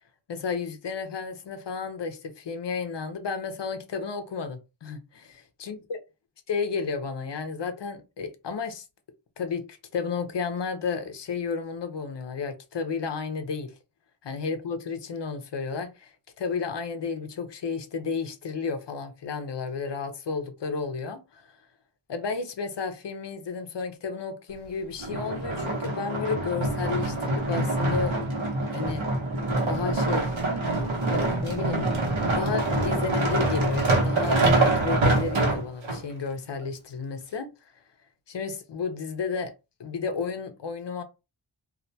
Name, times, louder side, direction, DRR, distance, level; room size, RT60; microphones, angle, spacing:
voice 1, 0.3-6.0 6.5-8.8 9.4-13.7 14.2-16.1 16.4-21.5 22.1-28.2 28.7-29.1 29.7-30.3 31.1-31.9 32.3-37.5 38.3-39.5 39.8-41.0, left 5 dB, 65° left, 0.6 m, -32 dB
sound 1, 25.0-36.0 36.6-36.7, right 2 dB, 80° right, 0.9 m, -25 dB
2.3 x 2.1 x 2.6 m
wide cardioid pair, 70°, 47 cm